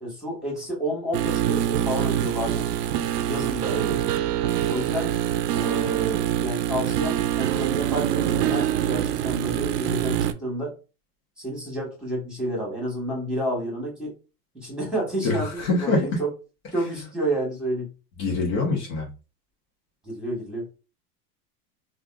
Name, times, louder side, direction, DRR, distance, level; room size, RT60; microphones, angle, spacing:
voice 1, 0.0-4.0 4.7-5.2 5.5-10.7 11.4-14.1 14.5-16.3 16.7-17.9 20.0-20.6, right 1 dB, ahead, -3 dB, 1.6 m, -30 dB
sound 1, 1.1-10.3, right 11 dB, 90° right, 0.6 m, -25 dB
voice 2, 15.2-16.2 18.2-19.1, left 3 dB, 50° left, -1 dB, 1.2 m, -24 dB
3.4 x 2.5 x 2.4 m, 0.32 s
supercardioid pair, 125°, 47 cm